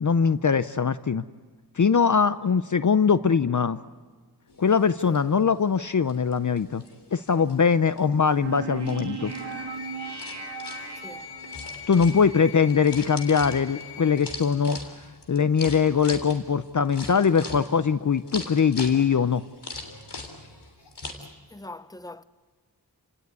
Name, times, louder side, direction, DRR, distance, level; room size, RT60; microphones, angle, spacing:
voice 1, 0.0-1.2 1.8-3.8 4.6-6.8 7.1-9.3 11.9-14.8 15.3-19.4, left 6 dB, 50° left, 0.7 m, -22 dB
sound 1, 4.5-21.1, left 3 dB, 80° left, 3.4 m, -42 dB
sound 2, 8.4-11.7, right 6 dB, 80° right, 1.7 m, -37 dB
sound 3, 9.3-14.3, left 7 dB, 65° left, 1.6 m, -41 dB
voice 2, 11.0-11.3 21.2-22.2, left 2 dB, 10° left, 0.9 m, -43 dB
29.5 x 18.0 x 9.5 m
wide cardioid pair, 55°, 40 cm